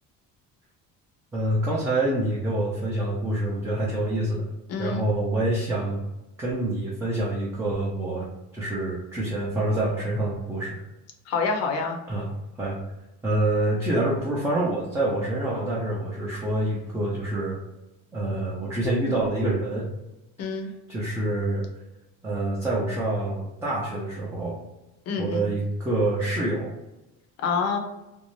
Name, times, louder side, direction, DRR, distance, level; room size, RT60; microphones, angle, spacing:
voice 1, 1.3-4.4 4.8-6.0 6.4-8.3 8.5-10.8 12.1-12.3 12.6-12.8 13.2-17.6 18.1-19.9 20.9-21.7 22.2-24.6 25.2-26.7, right 1 dB, 10° right, -6 dB, 0.4 m, -26 dB
voice 2, 4.7-5.1 11.3-12.0 20.4-20.7 25.1-25.5 27.4-27.8, left 4 dB, 50° left, 2 dB, 0.6 m, -27 dB
2.6 x 2.0 x 3.0 m, 0.96 s
cardioid pair, 155°, 32 cm